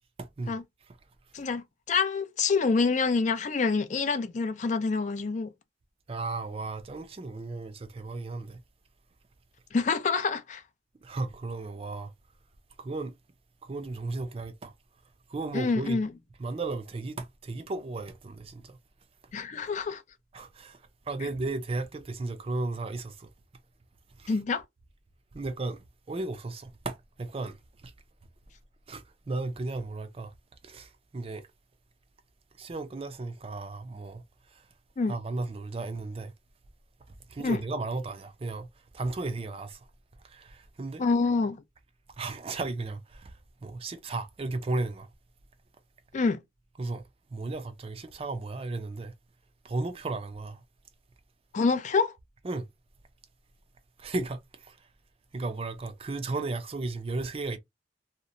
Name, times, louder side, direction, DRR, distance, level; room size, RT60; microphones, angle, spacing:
voice 1, 0.2-0.5 0.9-1.0 6.1-8.6 11.0-12.1 12.8-13.1 13.6-14.7 15.3-16.0 16.4-18.8 20.3-23.3 24.2-24.4 25.3-27.9 28.9-30.3 30.6-31.5 32.6-34.7 35.1-36.3 37.3-38.7 38.9-39.9 40.2-41.0 42.2-43.3 43.6-45.1 46.8-47.0 47.3-49.1 49.6-50.6 52.4-52.7 54.0-54.9 55.3-57.6, right 3 dB, 30° right, 0.4 m, -35 dB
voice 2, 1.3-5.5 9.7-10.6 15.5-16.1 19.3-20.0 21.2-21.3 24.3-24.6 35.0-35.2 37.4-37.6 41.0-41.6 46.1-46.4 51.5-52.1, left 4 dB, 40° left, 0.4 m, -27 dB
2.8 x 2.1 x 2.4 m
head